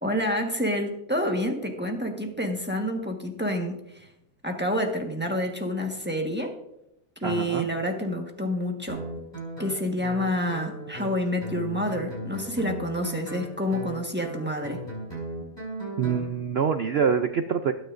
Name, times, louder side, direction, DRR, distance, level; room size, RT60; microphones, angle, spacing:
voice 1, 0.0-4.1 4.4-6.5 7.2-9.0 9.6-14.8, left 1 dB, 5° right, 2 dB, 1.2 m, -28 dB
voice 2, 7.2-7.7 16.0-17.7, right 7 dB, 70° right, 7 dB, 0.6 m, -25 dB
Guitar, 8.9-16.3, right 1 dB, 15° left, 5.7 m, -37 dB
20.5 x 9.4 x 2.6 m, 0.82 s
omnidirectional pair, 1.7 m